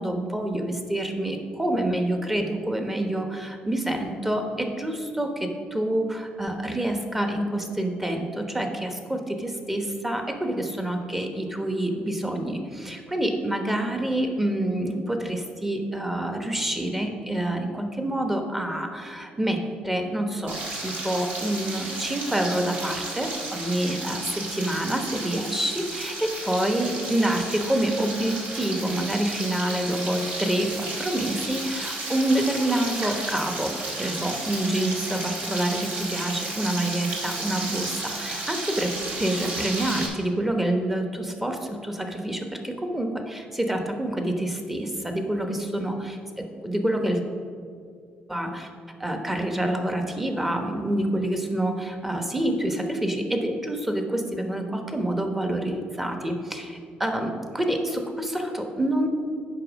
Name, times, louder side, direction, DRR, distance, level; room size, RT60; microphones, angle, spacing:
voice 1, 0.0-47.2 48.3-48.7 49.0-59.1, right 1 dB, 10° right, 4 dB, 1.1 m, -27 dB
Frying (food), 20.5-40.1, right 2 dB, 55° right, 2.2 m, -33 dB
8.7 x 5.6 x 6.2 m, 2.2 s
cardioid pair, 120°, 3 cm